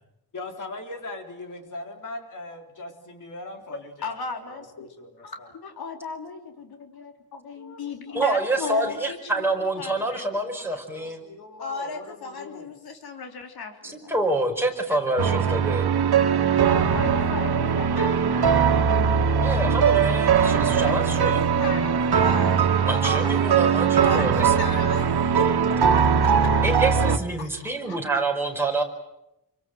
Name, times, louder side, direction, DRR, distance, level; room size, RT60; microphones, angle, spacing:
voice 1, 0.3-4.2 4.5-5.1 5.4-5.5 7.6-7.8 8.1-8.8 10.8-12.7, left 2 dB, 50° left, 4 dB, 4.0 m, -40 dB
voice 2, 3.7-5.1 5.6-6.9 7.4-9.5 9.8-10.8 11.6-14.1 14.9-15.3 16.8-18.5 20.8-26.5 27.4-28.0, left 4 dB, 75° left, 4 dB, 3.4 m, -37 dB
voice 3, 8.1-11.2 13.8-15.9 19.4-21.4 22.8-24.5 26.6-28.8, right 2 dB, 5° right, 1 dB, 4.9 m, -27 dB
sound 1, 15.2-27.2, right 6 dB, 80° right, 1.8 m, -20 dB
27.5 x 25.0 x 7.8 m, 0.87 s
wide cardioid pair, 155°, 38 cm